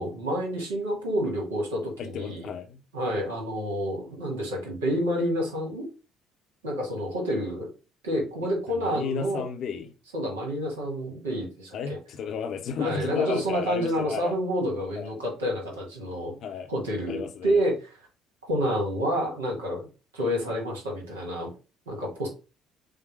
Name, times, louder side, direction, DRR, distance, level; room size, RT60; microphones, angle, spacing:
voice 1, 0.0-2.5 2.9-5.9 6.6-7.7 8.0-9.4 10.1-12.0 12.8-16.3 16.7-17.9 18.4-19.9 20.1-21.5 21.9-22.3, equal, 75° right, 1.5 m, -29 dB
voice 2, 2.0-2.8 8.7-9.9 11.7-14.3 14.9-15.1 16.4-16.7 17.1-17.6, left 6 dB, 50° left, 0.7 m, -33 dB
6.4 x 2.2 x 3.2 m
figure-of-eight pair, 50°, 0 cm